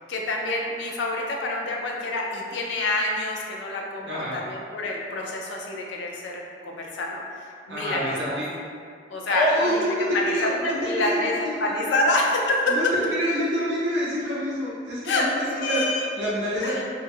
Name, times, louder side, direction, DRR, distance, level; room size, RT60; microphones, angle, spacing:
voice 1, 0.1-8.4 9.1-9.4 9.9-12.9 15.0-15.3 15.6-16.1 16.6-16.8, left 2 dB, 85° left, -1 dB, 0.4 m, -27 dB
voice 2, 4.0-4.4 7.7-8.5 9.3-11.4 11.6-12.1 12.7-16.8, equal, 75° right, -7 dB, 0.5 m, -27 dB
2.3 x 2.1 x 3.0 m, 2.2 s
head